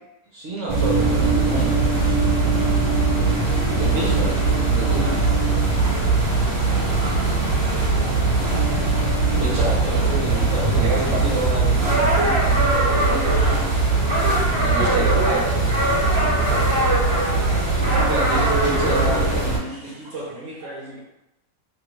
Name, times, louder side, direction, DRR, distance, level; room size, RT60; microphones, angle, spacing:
voice 1, 0.3-2.3 3.7-5.5 9.3-13.8 14.6-16.7 17.8-21.0, right 2 dB, 60° right, -5 dB, 0.8 m, -31 dB
sound 1, 0.7-19.6, right 3 dB, 35° right, 1.3 m, -20 dB
voice 2, 2.7-3.9 6.3-8.5 16.5-17.3, left 3 dB, 75° left, -6 dB, 0.6 m, -44 dB
voice 3, 5.0-6.1 6.9-7.4 8.5-9.4 10.4-11.5 12.1-12.2 14.1-15.4 20.0-20.1 20.8-21.0, right 3 dB, 75° right, 1 dB, 1.1 m, -32 dB
3.4 x 2.4 x 3.0 m, 0.90 s
omnidirectional pair, 1.9 m